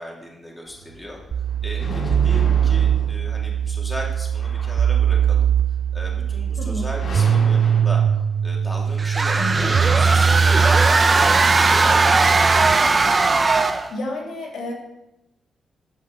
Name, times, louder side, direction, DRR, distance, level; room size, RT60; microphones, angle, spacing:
voice 1, 0.0-5.5 5.9-8.0 8.4-12.4, equal, 5° left, -2 dB, 2.7 m, -36 dB
sound 1, 0.7-11.1, left 1 dB, 50° left, 2.7 m, -35 dB
sound 2, 1.3-12.7, right 7 dB, 50° right, 0.3 m, -21 dB
sound 3, 9.0-13.9, right 3 dB, 30° right, 0.8 m, -18 dB
voice 2, 13.5-14.7, left 2 dB, 80° left, -1 dB, 3.1 m, -31 dB
12.0 x 5.3 x 7.3 m, 0.93 s
cardioid pair, 115°, 0 cm